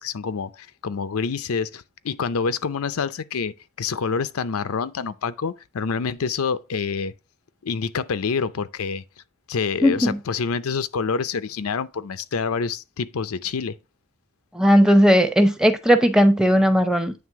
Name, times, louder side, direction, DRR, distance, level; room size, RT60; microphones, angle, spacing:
voice 1, 0.0-7.1 7.6-9.0 9.5-13.7, left 5 dB, 85° left, 0.5 m, -27 dB
voice 2, 9.8-10.2 14.5-17.1, equal, 5° right, 0.7 m, -17 dB
9.3 x 3.4 x 4.6 m
head